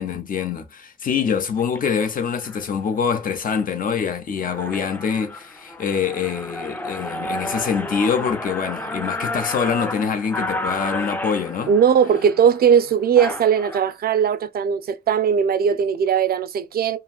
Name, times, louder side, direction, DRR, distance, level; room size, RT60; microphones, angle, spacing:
voice 1, 0.0-11.7, left 6 dB, 60° left, 0.5 m, -25 dB
sound 1, 1.6-1.8 2.4-2.7 3.2-3.6 4.0-4.1 4.4-13.8, left 1 dB, 10° left, 0.5 m, -31 dB
voice 2, 11.7-17.0, right 7 dB, 70° right, 0.4 m, -19 dB
2.9 x 2.5 x 2.3 m
wide cardioid pair, 170°, 17 cm